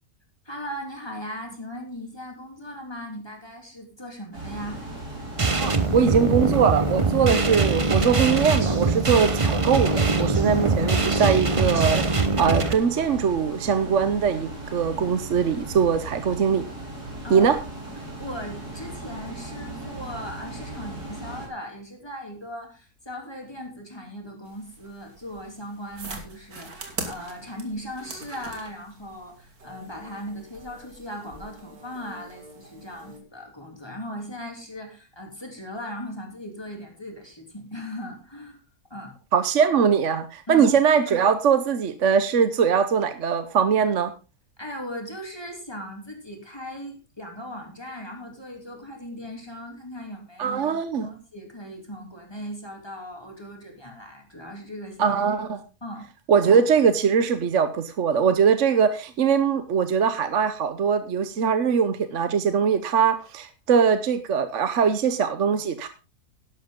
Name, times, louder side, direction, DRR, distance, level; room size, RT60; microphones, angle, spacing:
voice 1, 0.4-4.8 17.2-17.6 18.0-38.6 38.9-39.2 40.5-40.8 44.6-55.2 55.8-56.1, equal, 15° left, 2 dB, 3.1 m, -38 dB
sound 1, 4.3-21.5, right 1 dB, 90° right, 5.4 m, -37 dB
sound 2, 5.4-12.7, right 3 dB, 25° right, 0.9 m, -22 dB
voice 2, 5.6-12.0 12.4-16.6 17.3-17.6 39.3-44.1 50.4-51.1 55.0-55.6 56.3-65.9, right 6 dB, 55° right, 10 dB, 1.2 m, -21 dB
sound 3, 24.4-33.2, right 3 dB, 70° right, 2.7 m, -42 dB
12.5 x 11.5 x 3.8 m, 0.32 s
omnidirectional pair, 1.6 m